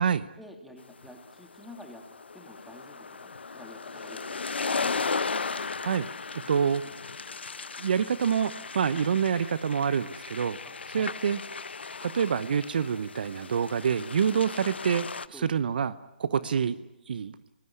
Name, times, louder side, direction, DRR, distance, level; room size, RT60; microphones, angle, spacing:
voice 1, 0.4-2.0 2.3-4.9 10.6-11.1 15.3-15.7 16.3-16.5, left 1 dB, ahead, 2 dB, 2.9 m, -49 dB
sound 1, 1.0-15.3, left 4 dB, 80° left, 0.9 m, -36 dB
voice 2, 6.5-6.8 7.8-10.6 10.9-11.4 12.0-15.1 15.4-15.9 16.2-16.8 17.1-17.3, right 7 dB, 60° right, 16 dB, 0.8 m, -26 dB
24.0 x 18.5 x 9.9 m, 0.98 s
hypercardioid pair, 145°, 6 cm